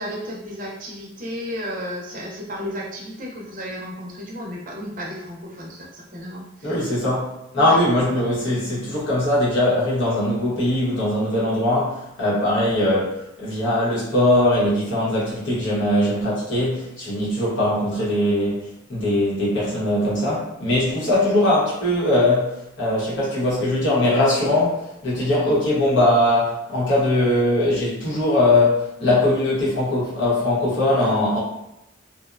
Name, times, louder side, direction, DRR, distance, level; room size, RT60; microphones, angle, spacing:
voice 1, 0.0-6.9 7.6-7.8 8.1-8.2 21.1-21.2 25.4-25.6 29.0-29.1, equal, 45° right, -2 dB, 0.5 m, -33 dB
voice 2, 6.6-31.4, left 1 dB, 75° left, -7 dB, 1.1 m, -21 dB
2.6 x 2.1 x 2.4 m, 0.87 s
head